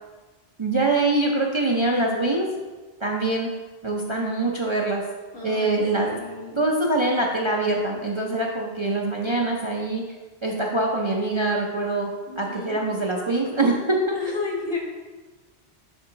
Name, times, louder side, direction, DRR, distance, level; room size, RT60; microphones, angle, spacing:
voice 1, 0.6-2.5 3.0-3.5 3.8-5.0 5.4-6.1 6.6-10.0 10.4-12.1 12.4-14.0, right 2 dB, 35° right, -2 dB, 0.6 m, -24 dB
voice 2, 5.3-6.6 12.3-12.8 14.1-14.8, left 4 dB, 60° left, -2 dB, 1.5 m, -32 dB
7.0 x 4.7 x 3.9 m, 1.3 s
omnidirectional pair, 1.1 m